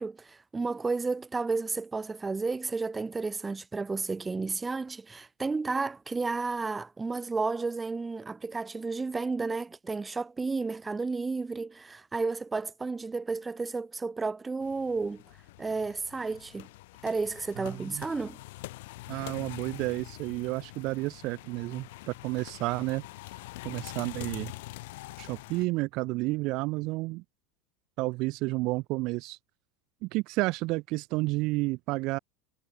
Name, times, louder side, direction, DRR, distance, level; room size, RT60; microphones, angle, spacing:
voice 1, 0.0-15.2 15.6-16.7 17.0-18.4, right 4 dB, 10° right, 0.8 m, -32 dB
sound 1, 14.6-25.7, left 20 dB, 70° left, 4.2 m, -45 dB
voice 2, 17.6-18.1 19.1-23.0 23.6-24.5 25.2-27.2 28.0-29.4 30.0-32.2, right 22 dB, 45° right, 0.4 m, -31 dB
supercardioid pair, 160°, 0 cm